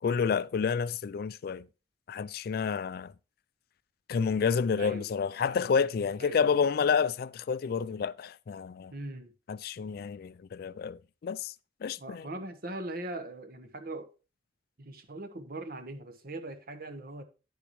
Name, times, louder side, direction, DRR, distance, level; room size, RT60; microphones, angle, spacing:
voice 1, 0.0-1.6 2.1-3.1 4.1-8.9 9.5-11.5 11.8-12.3, left 6 dB, 55° left, 0.3 m, -29 dB
voice 2, 8.9-9.3 12.0-14.1 14.8-17.2, right 2 dB, 55° right, 1.1 m, -40 dB
9.6 x 6.9 x 3.1 m
head